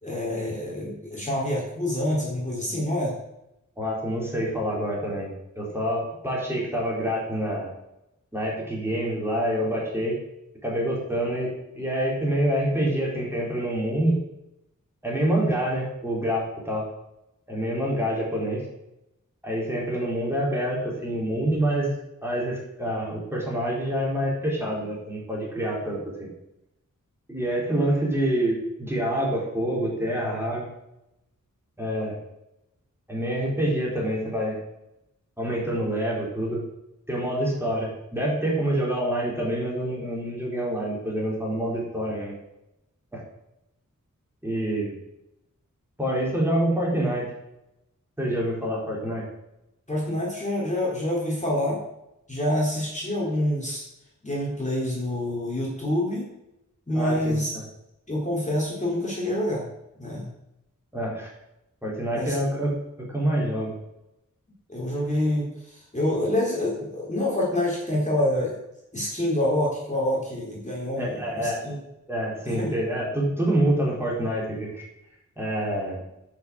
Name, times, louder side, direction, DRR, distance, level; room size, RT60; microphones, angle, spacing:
voice 1, 0.0-3.1 49.9-51.8 52.3-53.8 54.2-56.3 56.9-57.5 58.1-59.6 60.0-60.3 62.1-62.4 64.7-68.5 68.9-71.8 72.4-72.7, left 1 dB, 25° left, -4 dB, 3.8 m, -27 dB
voice 2, 3.8-7.7 8.3-10.2 10.6-14.2 15.0-16.8 17.5-18.6 19.4-21.9 22.2-26.3 27.3-30.7 31.8-32.2 33.1-34.6 35.4-36.6 37.1-42.3 43.1-43.2 44.4-44.9 46.0-47.3 48.2-49.3 56.9-57.6 60.9-61.3 61.8-62.7 63.0-63.7 71.0-71.6 72.1-74.8 75.4-76.0, right 1 dB, 10° right, -4 dB, 4.4 m, -26 dB
10.0 x 6.2 x 7.9 m, 0.87 s
wide cardioid pair, 85°, 32 cm